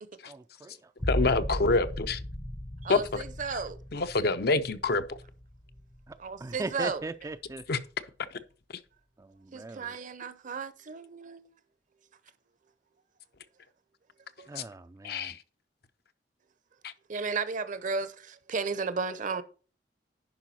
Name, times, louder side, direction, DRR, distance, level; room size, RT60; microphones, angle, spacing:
voice 1, 0.3-0.7 6.4-7.6 9.5-9.9 14.5-15.3, right 2 dB, 20° right, 0.3 m, -39 dB
sound 1, 1.0-6.5 6.9-7.5, left 1 dB, 20° left, 0.6 m, -37 dB
voice 2, 1.1-2.2 2.9-3.0 3.5-3.6 3.9-5.0 7.7-7.8 14.6-14.7 15.0-15.4, left 3 dB, 65° left, 0.7 m, -26 dB
voice 3, 2.8-3.8 6.2-7.0 9.5-11.5 14.4-14.5 17.1-19.4, right 4 dB, 45° right, 0.7 m, -34 dB
10.5 x 4.9 x 4.2 m
head